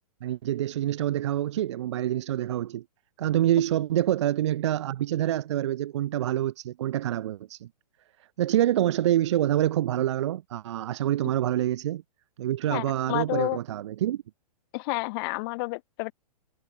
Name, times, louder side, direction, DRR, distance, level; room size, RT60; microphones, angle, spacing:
voice 1, 0.2-2.8 3.2-7.7 8.4-12.0 12.4-14.2, right 12 dB, 45° right, 0.7 m, -26 dB
voice 2, 12.7-13.6 14.7-16.1, left 28 dB, 35° left, 3.3 m, -30 dB
figure-of-eight pair, 115°, 21 cm